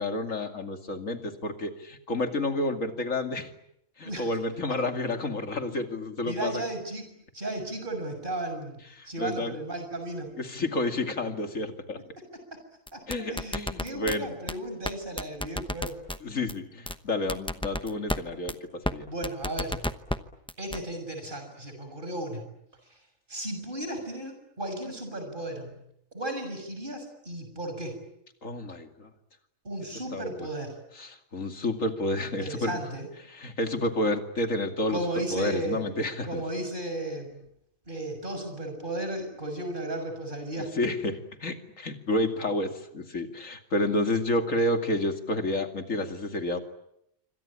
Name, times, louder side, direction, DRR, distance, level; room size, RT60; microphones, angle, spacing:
voice 1, 0.0-3.5 4.0-6.6 9.0-9.5 10.4-12.0 13.1-14.3 16.2-19.1 28.4-29.1 30.1-30.5 31.0-32.8 33.3-35.0 35.3-36.4 40.7-46.6, left 2 dB, 75° left, 5 dB, 2.9 m, -30 dB
voice 2, 4.0-4.3 5.7-5.8 6.2-7.0 7.3-10.3 12.5-12.6 12.9-16.0 19.1-19.8 20.6-22.4 23.3-25.7 26.1-27.9 29.6-30.7 32.4-33.1 34.9-35.8 36.2-37.4 37.9-40.7, right 1 dB, 40° right, 6 dB, 6.7 m, -35 dB
sound 1, 12.9-14.2 14.5-14.6 14.9-15.0 15.2-16.2 16.5-16.6 16.9-17.0 17.3-18.2 18.5-18.6 18.9-19.0 19.2-20.2 20.5-20.8, left 1 dB, 5° left, 0.8 m, -30 dB
27.0 x 25.0 x 8.7 m, 0.79 s
omnidirectional pair, 1.3 m